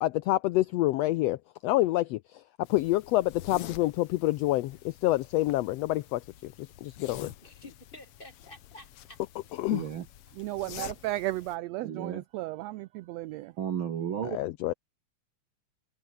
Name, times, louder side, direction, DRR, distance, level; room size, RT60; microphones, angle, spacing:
voice 1, 0.0-2.4 2.7-7.3 9.6-9.9 14.2-14.7, left 17 dB, 80° left, 1.5 m, -27 dB
sound 1, 2.6-11.5, left 12 dB, 60° left, 1.7 m, -48 dB
voice 2, 7.2-9.2, left 1 dB, 15° left, 5.1 m, -50 dB
voice 3, 9.7-10.1 11.8-12.2 13.6-14.4, right 9 dB, 55° right, 1.7 m, -33 dB
voice 4, 10.3-13.6, right 17 dB, 80° right, 1.6 m, -34 dB
omnidirectional pair, 3.4 m